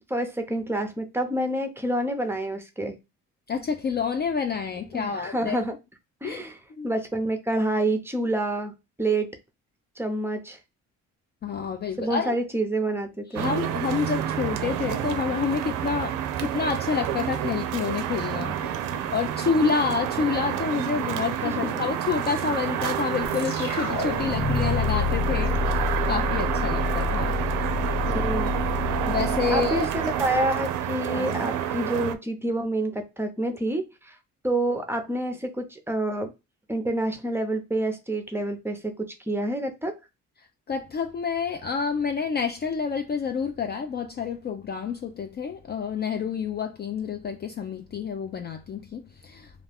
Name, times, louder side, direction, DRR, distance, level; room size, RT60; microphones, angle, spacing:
voice 1, 0.1-3.0 4.9-5.7 6.2-6.6 6.8-9.4 10.0-10.6 12.0-13.5 21.4-21.6 28.1-28.5 29.5-34.2 34.4-36.3 36.7-40.0, right 1 dB, 10° right, 0.6 m, -28 dB
voice 2, 3.5-5.6 6.2-6.4 6.7-6.9 11.4-12.4 13.3-27.4 29.1-29.9 31.1-31.5 40.7-49.5, left 6 dB, 35° left, 0.4 m, -28 dB
sound 1, 13.4-32.2, right 10 dB, 85° right, 0.5 m, -29 dB
sound 2, 23.2-30.5, left 5 dB, 70° left, 1.4 m, -28 dB
2.4 x 2.2 x 3.4 m
cardioid pair, 90°, 30 cm